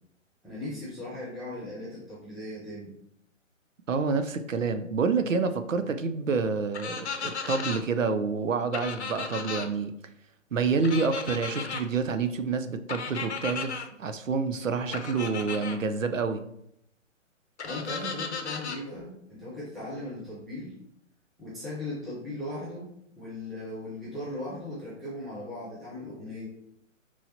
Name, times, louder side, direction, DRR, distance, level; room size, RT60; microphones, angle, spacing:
voice 1, 0.4-2.9 17.6-20.7 21.4-22.9 23.2-26.5, left 1 dB, ahead, -10 dB, 0.3 m, -38 dB
voice 2, 3.9-9.9 10.5-16.4, right 5 dB, 75° right, 9 dB, 0.6 m, -28 dB
sound 1, 6.7-7.8 8.7-9.7 10.8-11.8 12.9-13.8 14.9-15.8 17.6-18.8, left 5 dB, 60° left, 0.7 m, -35 dB
5.5 x 3.1 x 2.6 m, 0.76 s
figure-of-eight pair, 135°, 39 cm